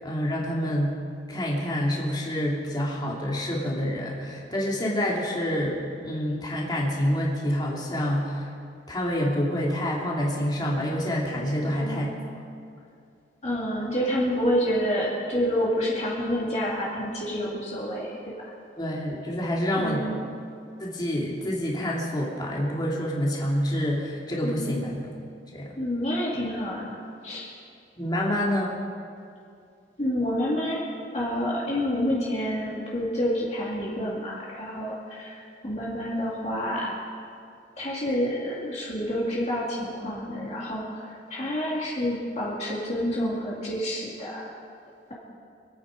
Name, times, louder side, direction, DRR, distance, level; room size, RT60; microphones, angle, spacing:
voice 1, 0.0-1.0 1.3-8.5 8.9-12.1 18.8-20.0 20.8-25.1 25.5-25.7 28.0-28.8, equal, 25° left, -4 dB, 2.6 m, -27 dB
voice 2, 11.7-12.1 13.4-18.5 19.8-20.2 24.4-24.8 25.8-27.0 27.2-27.5 30.0-30.8 31.1-36.9 37.8-44.5, equal, 40° left, -5 dB, 2.3 m, -28 dB
25.5 x 9.1 x 5.1 m, 2.4 s
head